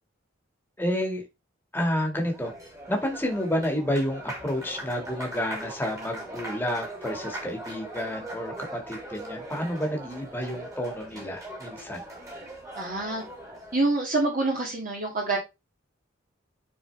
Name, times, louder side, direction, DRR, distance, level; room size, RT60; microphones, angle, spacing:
voice 1, 0.8-1.2 1.7-2.5 2.9-12.0, equal, 10° left, 2 dB, 1.9 m, -30 dB
Applause, 2.0-13.9, right 1 dB, 15° right, 2.7 m, -40 dB
voice 2, 12.7-13.2 13.7-15.4, right 2 dB, 45° right, -2 dB, 2.4 m, -26 dB
9.9 x 4.5 x 3.4 m, 0.24 s
head